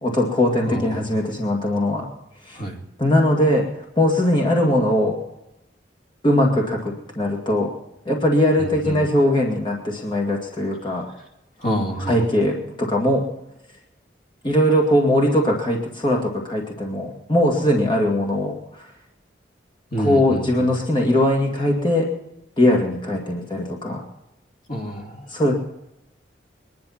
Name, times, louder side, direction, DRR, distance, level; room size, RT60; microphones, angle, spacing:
voice 1, 0.0-2.1 2.5-2.6 3.0-3.7 4.0-5.2 6.2-7.7 8.1-11.1 12.1-13.3 14.4-18.9 20.0-22.1 22.6-24.0 25.3-25.5, left 1 dB, 25° left, -1 dB, 2.1 m, -20 dB
voice 2, 0.6-1.2 2.5-2.8 8.6-9.0 11.6-12.2 19.9-20.7 24.7-25.3, equal, 45° left, 1 dB, 2.6 m, -28 dB
22.0 x 11.0 x 5.8 m, 0.91 s
head